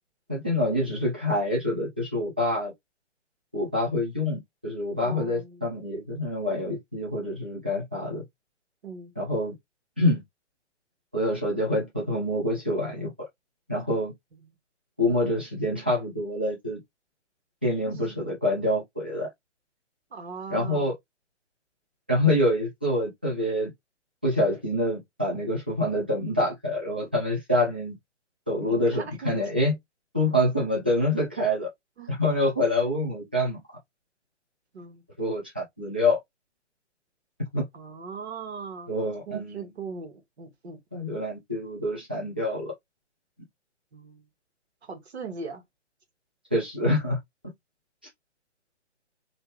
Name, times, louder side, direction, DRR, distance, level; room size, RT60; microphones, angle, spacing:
voice 1, 0.3-2.7 3.5-8.2 9.2-9.5 10.0-10.2 11.1-13.3 13.7-14.1 15.0-16.8 17.6-19.3 20.5-20.9 22.1-23.7 24.2-28.0 28.5-29.8 30.1-31.7 32.1-33.6 35.2-36.2 37.5-37.7 38.9-39.7 40.9-42.7 46.5-47.2, left 1 dB, 10° right, 0.3 m, -26 dB
voice 2, 5.0-5.7 8.8-9.1 17.9-18.2 20.1-20.9 28.7-29.4 32.0-32.1 34.7-35.0 37.7-38.9 39.3-40.8 43.9-44.2 44.8-45.6, right 5 dB, 60° right, 1.3 m, -39 dB
3.4 x 2.6 x 3.1 m
figure-of-eight pair, 130°, 36 cm